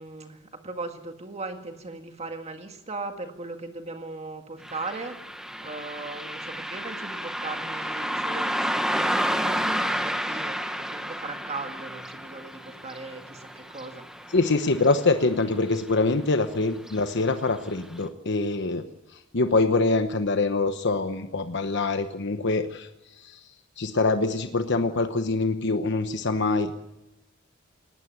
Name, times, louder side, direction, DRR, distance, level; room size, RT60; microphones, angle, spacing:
voice 1, 0.0-5.2 5.6-14.3, right 3 dB, 30° right, 5 dB, 1.8 m, -38 dB
Car passing by, 4.6-15.4 15.7-15.8 16.8-16.9 17.4-17.5 18.0-18.1, equal, 5° right, 1.2 m, -31 dB
voice 2, 14.3-18.8 19.3-22.9 23.2-23.4 23.8-26.7, left 3 dB, 60° left, 8 dB, 1.0 m, -24 dB
19.5 x 16.5 x 9.2 m, 0.97 s
head